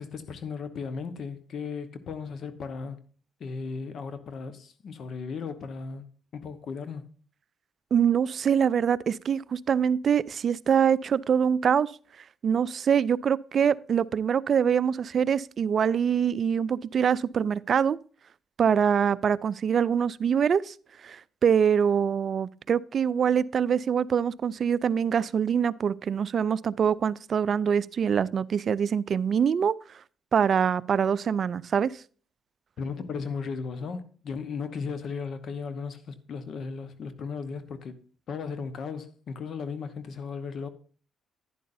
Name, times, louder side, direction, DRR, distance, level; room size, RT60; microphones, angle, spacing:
voice 1, 0.0-3.0 3.4-6.1 6.3-7.1 32.8-37.9 38.3-40.7, left 5 dB, 60° left, 1.0 m, -36 dB
voice 2, 7.9-11.9 12.4-18.0 18.6-20.7 21.0-29.7 30.3-31.9, right 7 dB, 50° right, 0.4 m, -24 dB
11.0 x 10.0 x 2.6 m
cardioid pair, 90°, 0 cm